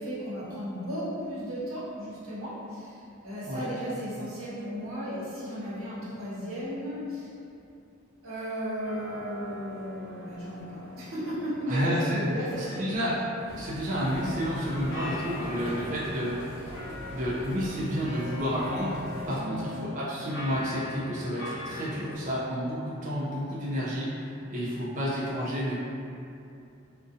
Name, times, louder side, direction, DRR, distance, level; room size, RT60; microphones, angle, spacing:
voice 1, 0.0-7.3 8.2-13.1 19.3-19.6, equal, 90° right, -8 dB, 0.8 m, -35 dB
sound 1, 8.8-22.2, left 1 dB, 75° left, 0.8 m, -42 dB
voice 2, 11.7-12.3 12.6-13.3 13.5-16.4 17.1-18.9 19.3-25.8, equal, 40° right, -8 dB, 0.4 m, -30 dB
sound 2, 13.5-19.4, equal, 35° left, 1.1 m, -43 dB
2.5 x 2.1 x 2.5 m, 2.6 s
head